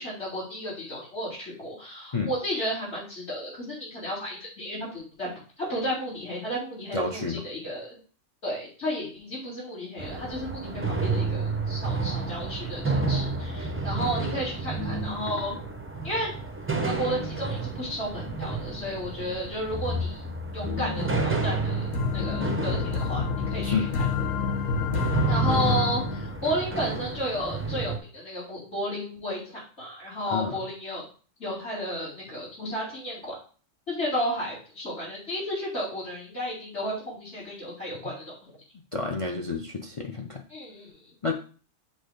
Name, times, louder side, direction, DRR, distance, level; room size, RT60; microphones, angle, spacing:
voice 1, 0.0-5.3 5.6-8.0 8.4-15.5 16.0-16.3 16.8-20.2 20.5-23.8 25.3-31.0 31.4-33.3 33.9-38.2 40.5-41.1, equal, 60° left, -8 dB, 4.0 m, -33 dB
voice 2, 6.9-7.4 23.6-23.9 30.3-30.6 38.9-40.4 41.2-41.3, left 4 dB, 35° left, 3 dB, 0.5 m, -29 dB
sound 1, 10.0-28.0, right 3 dB, 15° right, 0.4 m, -30 dB
sound 2, 21.0-27.3, left 5 dB, 90° left, 1.3 m, -29 dB
6.4 x 3.1 x 5.1 m, 0.40 s
omnidirectional pair, 1.3 m